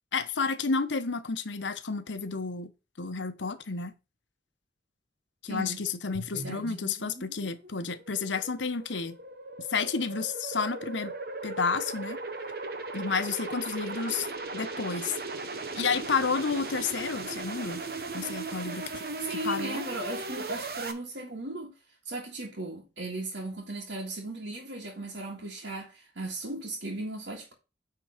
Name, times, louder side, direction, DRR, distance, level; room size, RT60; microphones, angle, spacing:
voice 1, 0.1-2.7 3.0-3.9 5.4-9.2 9.6-11.1 11.4-12.2 12.9-14.3 14.5-15.2 15.8-17.9 18.1-19.0 19.3-19.8, left 5 dB, 85° left, 0.9 m, -31 dB
voice 2, 5.5-5.8 6.3-6.6 19.2-21.7 22.1-27.5, right 2 dB, 85° right, 1.9 m, -36 dB
sound 1, 6.1-20.9, right 3 dB, 55° right, 1.1 m, -38 dB
9.2 x 3.8 x 5.0 m
head